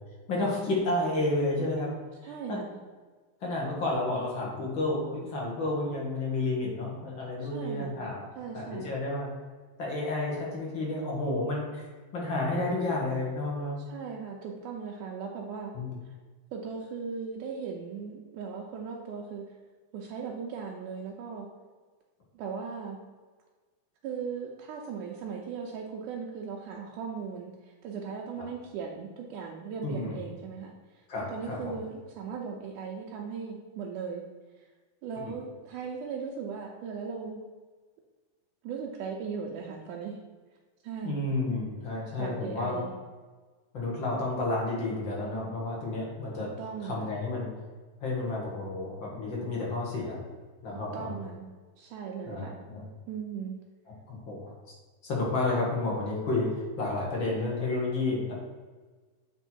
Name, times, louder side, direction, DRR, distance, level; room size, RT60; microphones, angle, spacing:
voice 1, 0.3-1.9 2.2-2.6 3.4-8.2 8.5-9.3 9.8-11.9 12.1-13.8 15.7-16.0 29.8-30.2 31.1-31.7 35.2-35.3 41.0-42.8 43.7-46.5 46.8-47.5 48.0-50.2 50.6-51.1 52.3-52.8 54.1-54.5 55.0-58.3, left 2 dB, 45° left, -3 dB, 1.8 m, -31 dB
voice 2, 2.2-2.8 7.4-8.0 8.4-8.9 13.8-15.7 16.1-16.2 16.5-19.6 19.9-21.5 22.3-23.0 24.0-31.0 31.3-34.3 34.6-34.7 35.0-37.5 38.6-40.2 40.8-41.2 42.2-42.9 46.6-47.1 50.9-52.6 53.1-53.6, right 6 dB, 80° right, -1 dB, 2.1 m, -38 dB
8.1 x 3.5 x 4.4 m, 1.4 s
omnidirectional pair, 3.8 m